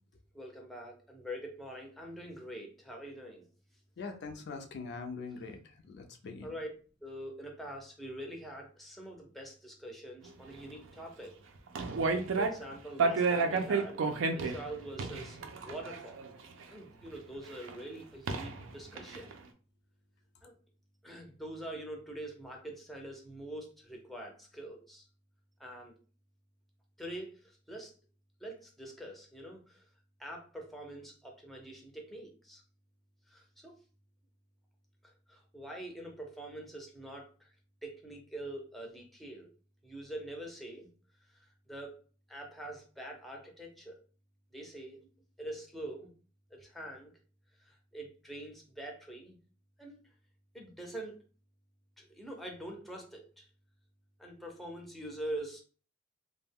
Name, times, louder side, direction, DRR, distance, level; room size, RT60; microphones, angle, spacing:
voice 1, 0.3-3.5 6.4-6.7 7.0-11.4 12.4-14.0 14.3-15.4 15.6-16.2 16.7-19.3 20.4-20.6 21.0-25.1 25.6-25.9 27.0-27.9 28.4-29.8 30.2-32.6 33.3-33.7 35.0-37.5 37.8-39.5 39.8-40.9 41.7-42.0 42.3-43.9 44.5-45.0 45.4-46.1 46.5-47.1 47.6-49.4 49.8-50.0 50.5-51.2 52.0-53.5 54.2-55.6, right 1 dB, ahead, 0.5 m, -44 dB
voice 2, 4.0-6.5, left 4 dB, 60° left, 0.4 m, -43 dB
sound 1, 11.7-12.7 13.0-16.6 17.7-17.8 18.3-18.6 19.0-19.3, right 4 dB, 80° right, 0.4 m, -31 dB
2.3 x 2.1 x 3.4 m
head